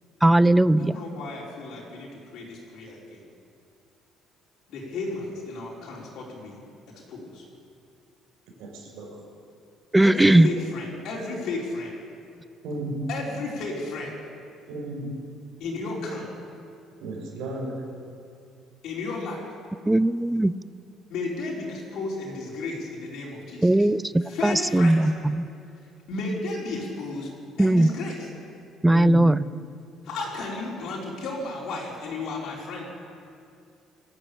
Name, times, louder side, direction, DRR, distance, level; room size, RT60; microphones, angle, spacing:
voice 1, 0.2-1.0 9.9-10.5 19.9-20.5 23.6-25.5 27.6-27.9 28.8-29.4, right 1 dB, 5° right, 17 dB, 0.4 m, -19 dB
voice 2, 0.8-3.2 4.7-6.6 6.9-7.4 10.0-11.9 13.1-14.2 15.6-16.3 18.8-19.5 21.1-23.7 24.2-25.1 26.1-27.3 27.6-28.3 30.0-32.8, left 3 dB, 65° left, -3 dB, 5.0 m, -33 dB
voice 3, 8.6-9.2 12.6-13.0 14.7-15.1 17.0-17.8 28.8-29.2, right 2 dB, 90° right, -2 dB, 5.9 m, -34 dB
20.5 x 14.5 x 8.8 m, 2.4 s
cardioid pair, 140°, 0 cm